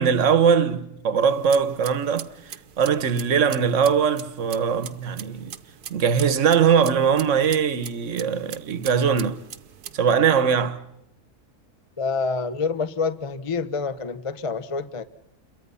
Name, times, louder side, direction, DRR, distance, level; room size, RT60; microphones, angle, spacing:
voice 1, 0.0-5.5 5.9-9.4 9.9-10.8, right 7 dB, 55° right, 1.4 m, -21 dB
sound 1, 1.2-10.0, right 9 dB, 80° right, 1.6 m, -42 dB
voice 2, 12.0-15.0, left 4 dB, 25° left, 0.8 m, -27 dB
29.0 x 23.0 x 5.6 m
omnidirectional pair, 1.6 m